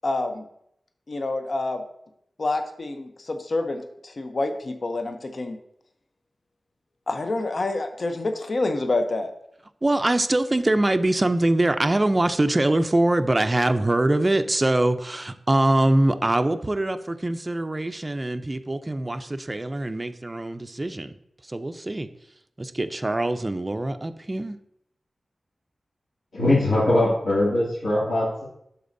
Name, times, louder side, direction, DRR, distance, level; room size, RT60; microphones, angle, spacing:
voice 1, 0.0-0.4 1.1-1.8 2.4-5.6 7.1-9.3, left 2 dB, 55° left, 6 dB, 0.6 m, -27 dB
voice 2, 9.8-21.1 21.4-22.1 22.6-24.6, right 1 dB, 25° right, 9 dB, 0.4 m, -23 dB
voice 3, 26.3-28.4, left 1 dB, 80° left, -9 dB, 2.3 m, -21 dB
12.0 x 4.1 x 2.6 m, 0.74 s
wide cardioid pair, 80°, 0 cm